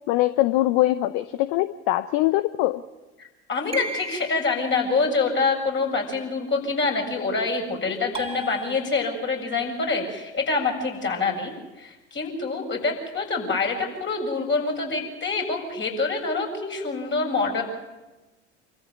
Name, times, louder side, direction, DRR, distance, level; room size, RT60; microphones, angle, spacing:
voice 1, 0.1-2.8, left 16 dB, 60° left, 13 dB, 0.8 m, -22 dB
voice 2, 3.2-17.6, left 4 dB, 35° left, 1 dB, 7.2 m, -26 dB
sound 1, 3.7-4.6 8.1-9.4, right 2 dB, 15° right, 2.8 m, -35 dB
26.5 x 14.5 x 9.5 m, 1.1 s
hypercardioid pair, 65°, 33 cm